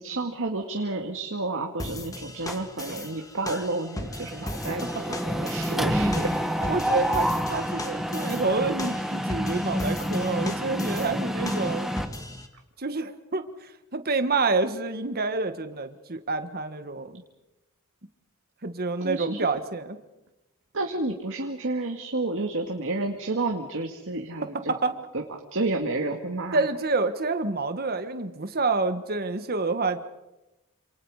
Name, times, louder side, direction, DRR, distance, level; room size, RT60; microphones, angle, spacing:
voice 1, 0.0-6.3 7.9-8.0 19.0-19.4 20.7-24.8 25.1-25.2 25.5-26.6, right 2 dB, 60° right, 3 dB, 2.1 m, -30 dB
sound 1, 1.8-12.5, left 1 dB, 15° left, 1.9 m, -38 dB
Mechanisms, 2.5-3.1 3.4-3.6 3.9-12.0, equal, ahead, 1.4 m, -28 dB
voice 2, 6.6-11.9 12.8-17.2 18.6-20.0 24.7-24.9 26.5-30.0, right 3 dB, 45° right, 9 dB, 1.6 m, -28 dB
28.5 x 27.5 x 5.0 m, 0.98 s
head